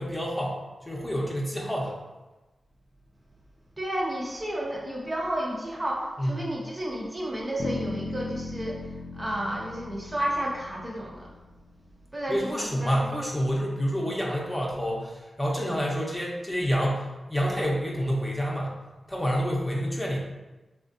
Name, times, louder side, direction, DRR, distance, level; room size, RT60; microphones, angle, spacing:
voice 1, 0.0-2.0 6.2-6.5 12.3-17.0 17.3-18.8 19.1-20.2, equal, 15° left, -3 dB, 0.7 m, -28 dB
voice 2, 3.8-11.3 12.1-13.2, right 1 dB, 30° right, -3 dB, 0.6 m, -32 dB
sound 1, 7.6-11.6, left 3 dB, 65° left, 0.4 m, -37 dB
3.3 x 2.4 x 2.6 m, 1.1 s
cardioid pair, 50°, 0 cm